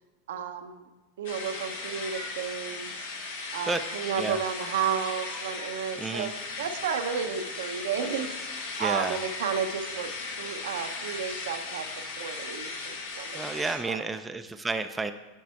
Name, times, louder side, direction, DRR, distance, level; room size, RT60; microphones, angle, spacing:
voice 1, 0.3-0.9 1.2-3.1 3.5-6.3 6.6-8.3 8.8-10.1 10.4-11.9 12.2-14.0, right 7 dB, 85° right, 7 dB, 0.7 m, -32 dB
sound 1, 1.2-13.8, left 3 dB, 80° left, 1.4 m, -37 dB
voice 2, 6.0-6.3 8.8-9.2 13.3-15.1, right 3 dB, 10° right, 8 dB, 0.3 m, -31 dB
6.5 x 5.4 x 4.4 m, 1.1 s
supercardioid pair, 125°, 0 cm